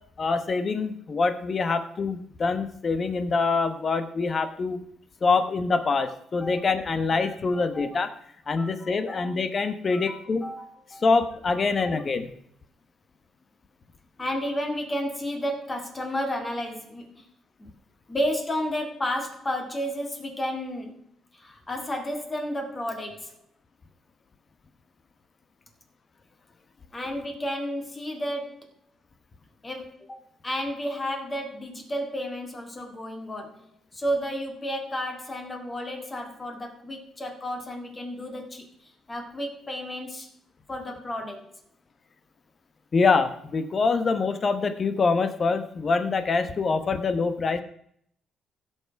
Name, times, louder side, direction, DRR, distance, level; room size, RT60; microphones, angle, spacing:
voice 1, 0.2-4.8 5.2-8.1 8.5-10.5 11.0-12.3 42.9-47.6, left 4 dB, 40° left, 10 dB, 1.2 m, -25 dB
voice 2, 7.6-8.0 8.6-9.3 9.9-11.0 11.6-11.9 14.2-17.2 17.6-17.7 18.1-21.0 21.3-23.3 26.9-28.7 29.6-30.2 30.4-33.6 33.9-38.7 39.1-40.3 40.7-41.5, equal, 25° left, 3 dB, 2.3 m, -32 dB
15.5 x 5.9 x 4.7 m, 0.68 s
cardioid pair, 100°, 0 cm